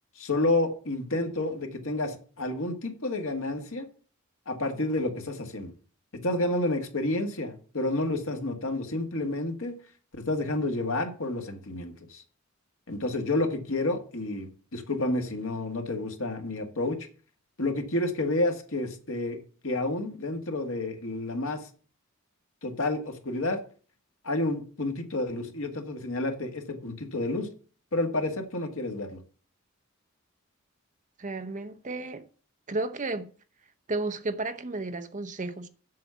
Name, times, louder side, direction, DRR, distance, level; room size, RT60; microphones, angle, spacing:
voice 1, 0.2-3.9 4.5-5.7 6.2-9.7 10.2-12.2 12.9-17.0 17.6-21.7 22.6-23.6 24.2-27.5 27.9-29.2, left 2 dB, 75° left, 1.9 m, -30 dB
voice 2, 31.2-32.3 32.7-33.3 33.9-35.7, right 2 dB, 35° right, 0.8 m, -33 dB
7.6 x 7.3 x 7.0 m
head